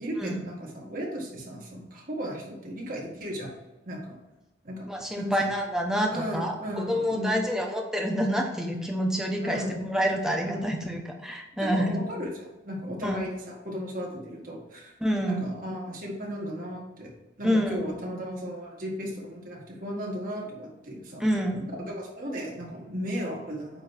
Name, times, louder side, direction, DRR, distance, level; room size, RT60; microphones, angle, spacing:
voice 1, 0.0-3.5 3.9-4.2 4.6-4.9 5.2-5.3 6.1-7.4 9.4-9.8 10.4-10.6 11.6-12.3 12.6-15.0 15.2-17.1 17.4-21.2 21.9-23.8, equal, 50° right, -2 dB, 2.0 m, -35 dB
voice 2, 4.9-12.0 13.0-13.2 15.0-15.4 17.4-17.8 21.2-21.7, equal, 5° right, 1 dB, 1.0 m, -27 dB
9.0 x 3.1 x 5.8 m, 1.0 s
head